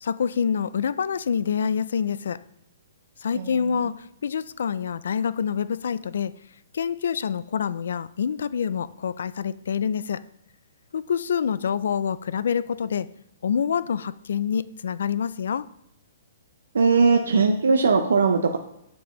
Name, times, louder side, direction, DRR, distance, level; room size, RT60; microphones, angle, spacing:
voice 1, 0.0-2.4 3.2-6.3 6.7-10.2 10.9-13.1 13.4-15.6, left 7 dB, 75° left, 17 dB, 0.3 m, -26 dB
voice 2, 16.7-18.6, right 4 dB, 90° right, 6 dB, 0.5 m, -19 dB
7.0 x 6.0 x 3.1 m, 0.78 s
hypercardioid pair, 155°, 0 cm